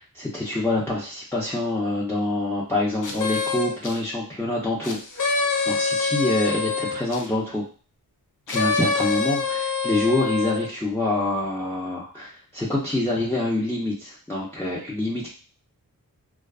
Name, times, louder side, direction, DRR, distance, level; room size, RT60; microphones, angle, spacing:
voice 1, 0.0-7.6 8.5-15.3, left 2 dB, 5° left, -6 dB, 0.6 m, -26 dB
sound 1, 3.0-4.0 4.8-7.3 8.5-10.7, left 4 dB, 55° left, 0.5 m, -25 dB
2.5 x 2.3 x 2.3 m, 0.40 s
wide cardioid pair, 75°, 37 cm